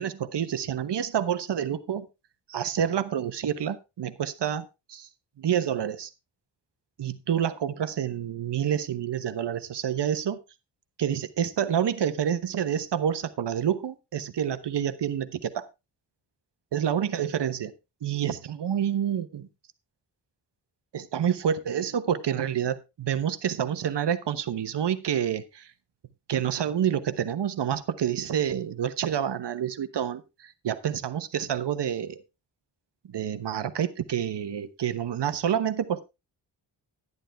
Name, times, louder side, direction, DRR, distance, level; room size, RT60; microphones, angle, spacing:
voice 1, 0.0-2.1 2.5-5.1 5.4-6.1 7.0-10.4 11.0-15.7 16.7-17.7 18.0-19.5 20.9-25.7 26.3-32.2 33.1-36.0, right 9 dB, 70° right, 1.1 m, -28 dB
11.0 x 10.5 x 3.4 m
wide cardioid pair, 120°, 43 cm